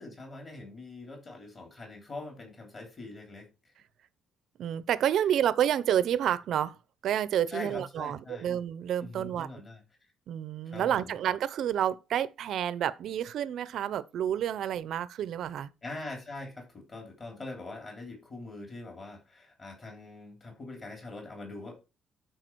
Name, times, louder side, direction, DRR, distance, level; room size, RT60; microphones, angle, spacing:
voice 1, 0.0-3.5 7.5-8.5 9.0-9.8 10.7-11.1 15.8-21.7, left 2 dB, 25° left, 3.2 m, -43 dB
voice 2, 4.6-6.8 7.0-9.5 10.3-15.7, right 10 dB, 55° right, 0.6 m, -29 dB
12.0 x 4.9 x 4.6 m
cardioid pair, 175°, 0 cm